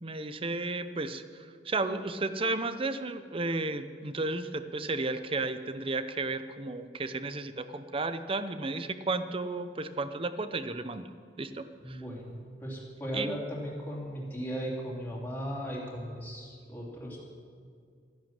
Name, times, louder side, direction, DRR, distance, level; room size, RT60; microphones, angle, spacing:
voice 1, 0.0-11.1 11.4-12.0 13.1-13.4, right 3 dB, 30° right, 11 dB, 0.7 m, -33 dB
voice 2, 11.8-17.2, equal, 10° left, -5 dB, 3.3 m, -37 dB
13.5 x 10.5 x 7.5 m, 2.2 s
head